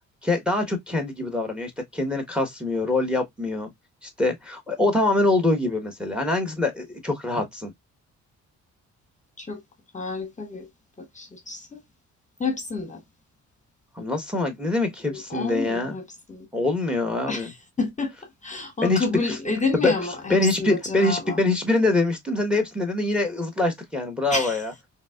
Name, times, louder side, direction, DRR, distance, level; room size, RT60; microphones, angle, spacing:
voice 1, 0.2-3.7 4.0-7.7 14.0-16.0 16.5-17.5 18.8-19.0 19.8-19.9 20.3-24.7, left 2 dB, 5° right, 1.1 m, -24 dB
voice 2, 9.9-10.7 11.0-11.8 12.4-13.0 15.1-16.0 16.3-16.5 17.3-18.1 18.4-21.4 24.3-24.6, left 3 dB, 25° left, 1.0 m, -29 dB
3.8 x 2.8 x 2.3 m
cardioid pair, 90°, 30 cm